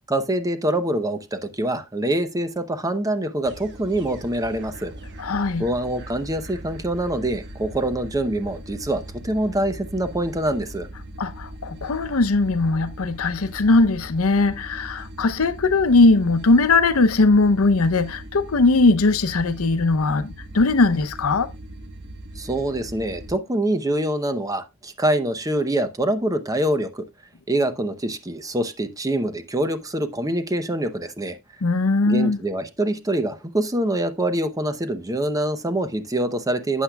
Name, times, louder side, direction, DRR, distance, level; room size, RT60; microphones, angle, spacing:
voice 1, 0.1-4.9 5.6-10.9 22.4-27.0 27.5-31.4 32.1-36.8, right 1 dB, 15° right, 0.7 m, -25 dB
sound 1, 3.4-23.3, right 1 dB, 55° right, 1.2 m, -39 dB
voice 2, 5.2-5.6 11.2-21.5 31.6-32.4, left 3 dB, 75° left, 0.7 m, -19 dB
12.0 x 8.2 x 2.3 m
head